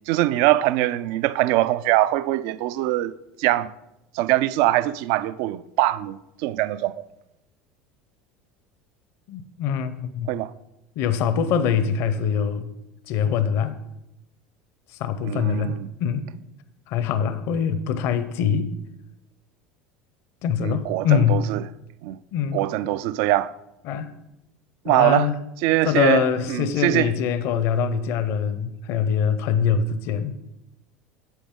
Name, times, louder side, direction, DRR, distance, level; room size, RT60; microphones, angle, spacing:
voice 1, 0.1-3.1 3.4-3.7 4.1-7.0 10.3-10.5 15.2-15.9 20.6-21.6 22.0-22.2 22.5-23.5 24.9-25.3 25.6-27.1, right 15 dB, 65° right, 0.3 m, -22 dB
voice 2, 9.3-10.3 11.0-12.7 13.1-13.8 15.0-16.3 16.9-18.7 20.4-21.5 22.3-22.6 23.8-24.1 24.9-25.4 25.8-30.3, left 7 dB, 60° left, 0.6 m, -23 dB
9.1 x 7.1 x 3.6 m
hypercardioid pair, 80°, 5 cm